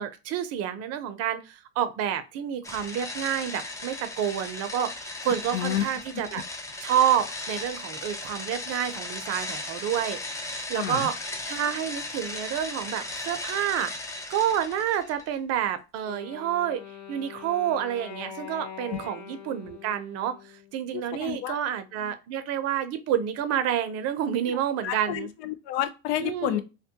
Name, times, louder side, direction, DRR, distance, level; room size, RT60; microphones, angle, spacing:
voice 1, 0.0-4.9 5.2-6.4 6.8-11.2 11.5-16.8 17.1-25.3 26.1-26.6, right 9 dB, 50° right, 0.5 m, -29 dB
sound 1, 2.6-15.3, left 2 dB, 10° left, 0.4 m, -36 dB
voice 2, 5.5-5.8 6.3-6.4 10.8-11.1 18.4-18.5 18.9-19.0 20.9-21.6 24.5-24.6 24.8-26.6, left 12 dB, 80° left, 0.5 m, -30 dB
Wind instrument woodwind instrument, 16.0-21.1, left 6 dB, 60° left, 1.1 m, -43 dB
2.2 x 2.1 x 2.7 m
supercardioid pair, 95°, 33 cm